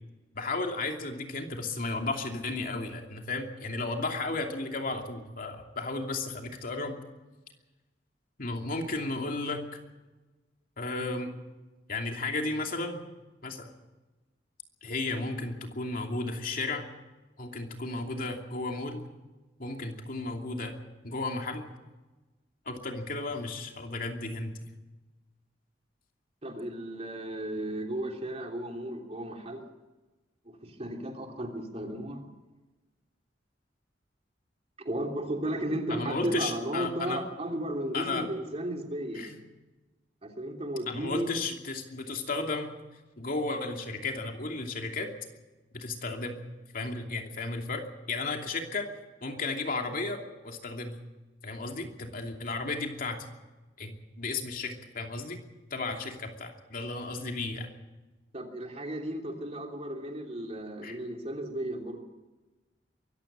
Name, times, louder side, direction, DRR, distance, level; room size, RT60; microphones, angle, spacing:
voice 1, 0.3-7.0 8.4-9.6 10.8-11.3 11.9-13.0 13.4-13.7 14.8-16.8 17.4-19.0 19.6-20.7 21.0-21.7 22.7-24.6 35.9-37.2 37.9-38.3 39.1-39.4 40.9-42.7 43.2-45.1 45.7-46.4 46.7-48.9 49.2-51.0 51.4-53.3 53.8-55.4 55.7-57.7 60.8-61.0, left 3 dB, 50° left, 3 dB, 2.8 m, -34 dB
voice 2, 26.4-29.6 30.4-32.2 34.8-39.3 40.2-41.3 58.3-62.0, right 1 dB, 35° right, 2 dB, 3.1 m, -34 dB
23.5 x 15.0 x 7.4 m, 1.2 s
head